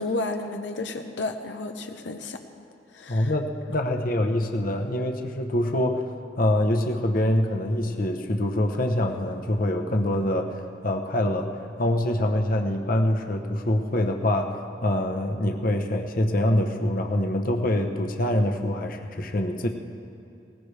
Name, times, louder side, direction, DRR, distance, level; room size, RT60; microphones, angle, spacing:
voice 1, 0.0-2.4 2.9-3.3, left 2 dB, 85° left, 5 dB, 0.8 m, -32 dB
voice 2, 3.1-10.4 10.8-11.5 11.8-14.5 14.8-19.7, left 1 dB, 50° left, 4 dB, 0.9 m, -25 dB
19.5 x 18.5 x 3.4 m, 2.5 s
head